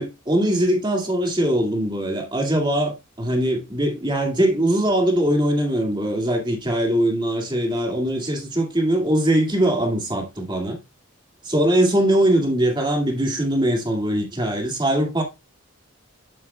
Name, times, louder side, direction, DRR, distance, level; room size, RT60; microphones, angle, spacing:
voice 1, 0.0-10.8 11.4-15.2, right 1 dB, 25° right, 2.2 m, -21 dB
10.0 x 8.3 x 2.3 m
head